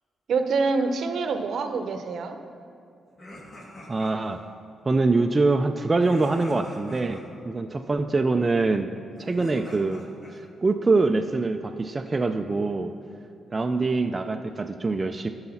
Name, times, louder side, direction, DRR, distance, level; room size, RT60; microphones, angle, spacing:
voice 1, 0.3-2.4, right 4 dB, 65° right, 7 dB, 0.7 m, -26 dB
Evil Laughs, 3.2-4.4 6.0-7.2 9.1-10.4, left 1 dB, 40° left, 2.2 m, -44 dB
voice 2, 3.9-4.4 4.8-8.9 9.2-12.9 13.5-15.3, right 3 dB, 25° right, 6 dB, 0.4 m, -24 dB
12.0 x 4.8 x 5.7 m, 2.5 s
cardioid pair, 90°, 0 cm